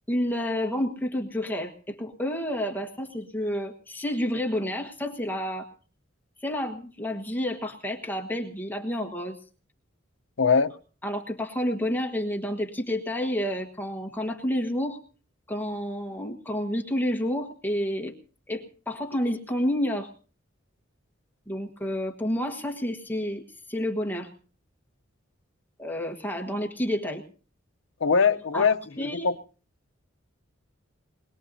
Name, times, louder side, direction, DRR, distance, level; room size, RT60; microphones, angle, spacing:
voice 1, 0.1-5.7 6.4-9.4 11.0-15.0 15.5-18.1 18.5-20.1 21.5-24.3 25.8-27.2 28.5-29.3, equal, 10° left, 1.4 m, -30 dB
voice 2, 10.4-10.7 28.0-29.4, left 5 dB, 65° left, 0.7 m, -22 dB
22.0 x 21.0 x 2.7 m
head